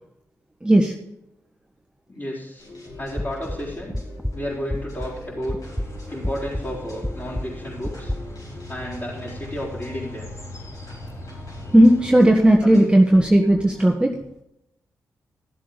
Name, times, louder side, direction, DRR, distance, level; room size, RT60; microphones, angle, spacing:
voice 1, 0.6-0.9 11.7-14.2, right 1 dB, 15° right, 1 dB, 1.4 m, -15 dB
voice 2, 2.1-2.6 3.0-4.0 4.3-5.8 6.1-8.2 8.7-10.3 12.6-12.9, equal, 30° left, -7 dB, 4.3 m, -32 dB
sound 1, 2.6-13.9, left 2 dB, 70° left, 5.1 m, -43 dB
sound 2, 3.2-5.2 5.5-8.2, left 1 dB, 5° left, 0.7 m, -30 dB
sound 3, 5.6-12.1, left 1 dB, 50° left, 4.6 m, -39 dB
13.5 x 7.7 x 5.1 m, 0.84 s
supercardioid pair, 45°, 7 cm